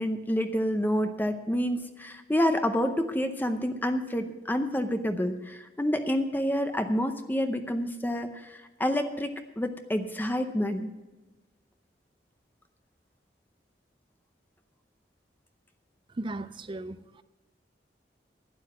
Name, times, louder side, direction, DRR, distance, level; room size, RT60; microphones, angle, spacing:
voice 1, 0.0-10.9, equal, 10° left, 7 dB, 0.6 m, -28 dB
voice 2, 16.1-17.2, right 2 dB, 30° right, 13 dB, 0.5 m, -37 dB
11.5 x 9.7 x 5.9 m, 1.1 s
head